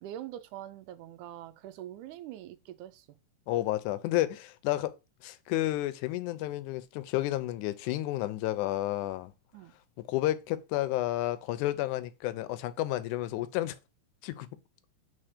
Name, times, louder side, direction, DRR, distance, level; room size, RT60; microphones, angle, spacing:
voice 1, 0.0-3.1 9.5-9.7, right 12 dB, 85° right, 2.0 m, -44 dB
voice 2, 3.5-5.0 5.2-9.3 10.1-13.8 14.2-14.5, left 15 dB, 80° left, 2.0 m, -31 dB
4.5 x 4.3 x 4.9 m
omnidirectional pair, 3.6 m